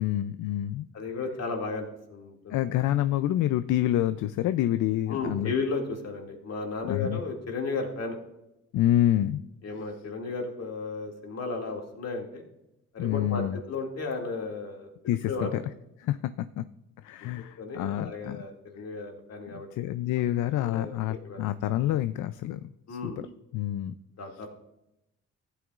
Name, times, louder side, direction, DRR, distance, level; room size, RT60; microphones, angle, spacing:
voice 1, 0.0-0.9 2.5-5.5 6.9-7.2 8.7-9.4 13.0-13.6 15.0-15.6 16.0-16.6 17.0-18.4 19.7-22.6 23.0-23.1 23.5-23.9, left 13 dB, 80° left, 12 dB, 0.5 m, -27 dB
voice 2, 0.9-2.7 5.1-8.2 9.6-12.5 12.9-14.9 15.2-15.5 17.6-19.7 20.6-21.4 22.9-23.2 24.2-24.5, left 3 dB, 55° left, 1 dB, 2.3 m, -34 dB
14.5 x 9.2 x 2.4 m, 0.89 s
cardioid pair, 90°, 30 cm